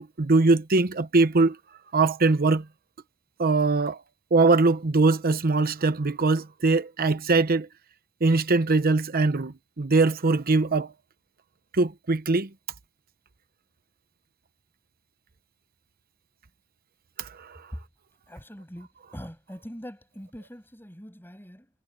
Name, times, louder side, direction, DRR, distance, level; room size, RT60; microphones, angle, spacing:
voice 1, 0.0-1.6 1.9-2.6 3.4-4.0 4.3-7.7 8.2-10.9 11.7-12.5 17.2-17.6, right 3 dB, 45° right, 0.8 m, -22 dB
voice 2, 18.3-21.7, equal, 10° left, 7.4 m, -42 dB
head